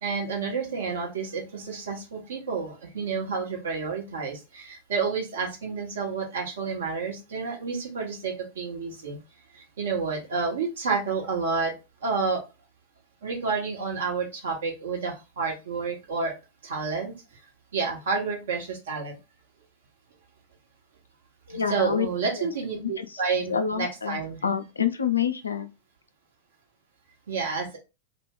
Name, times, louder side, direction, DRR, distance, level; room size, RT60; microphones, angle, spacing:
voice 1, 0.0-9.2 9.5-11.7 12.0-12.4 13.2-16.3 16.6-17.1 17.7-19.2 21.5-24.4 27.3-27.8, right 4 dB, 60° right, 1.1 m, -30 dB
voice 2, 21.5-22.1 22.4-22.5 23.0-23.1 23.5-25.7, left 7 dB, 75° left, 0.4 m, -27 dB
2.3 x 2.1 x 3.6 m
figure-of-eight pair, 90°, 0 cm